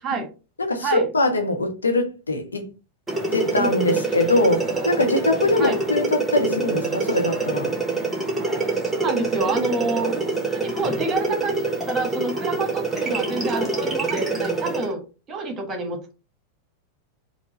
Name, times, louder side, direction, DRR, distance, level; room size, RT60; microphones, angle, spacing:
voice 1, 0.6-2.7 3.3-7.7, left 2 dB, 75° left, 0.8 m, -22 dB
sound 1, 3.1-14.9, right 3 dB, 5° right, 1.1 m, -26 dB
voice 2, 3.6-4.0 5.6-5.8 8.8-15.0 15.3-16.1, right 3 dB, 25° right, 1.3 m, -28 dB
4.4 x 2.2 x 4.0 m
figure-of-eight pair, 90°, 0 cm